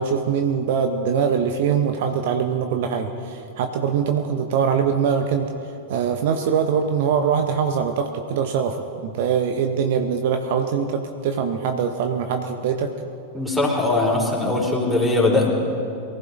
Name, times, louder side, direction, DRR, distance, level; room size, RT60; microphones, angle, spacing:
voice 1, 0.0-5.5 5.9-12.9, right 7 dB, 50° right, 6 dB, 0.8 m, -23 dB
voice 2, 13.3-15.6, left 2 dB, ahead, -2 dB, 3.8 m, -20 dB
23.5 x 15.0 x 2.7 m, 2.6 s
figure-of-eight pair, 90°, 0 cm